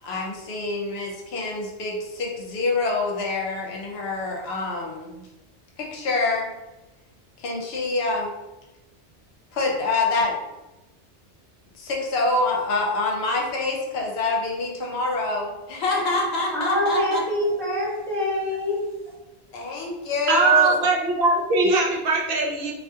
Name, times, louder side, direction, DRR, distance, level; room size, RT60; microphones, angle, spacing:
voice 1, 0.0-5.3 5.8-6.5 7.4-8.3 9.5-10.4 11.7-17.2 19.5-20.8, left 3 dB, 70° left, 0 dB, 0.8 m, -26 dB
voice 2, 16.5-18.8, left 1 dB, ahead, -9 dB, 0.9 m, -25 dB
voice 3, 20.3-22.7, right 3 dB, 70° right, -2 dB, 0.8 m, -20 dB
2.4 x 2.3 x 2.7 m, 1.0 s
omnidirectional pair, 1.2 m